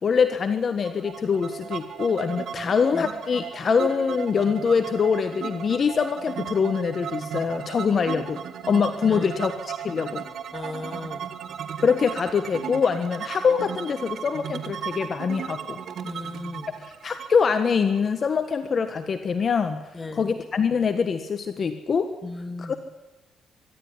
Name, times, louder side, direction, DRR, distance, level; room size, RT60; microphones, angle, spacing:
voice 1, 0.0-8.4 8.7-10.3 11.8-15.8 16.8-19.8 20.1-22.1 22.6-22.8, left 6 dB, 45° left, 8 dB, 1.5 m, -24 dB
sound 1, 0.8-18.6, right 8 dB, 65° right, 1.7 m, -36 dB
voice 2, 2.6-3.1 9.1-9.4 10.5-11.3 16.0-16.7 19.9-20.3 22.2-22.8, left 2 dB, 20° left, 7 dB, 2.2 m, -37 dB
24.0 x 12.5 x 9.8 m, 1.0 s
cardioid pair, 90°, 0 cm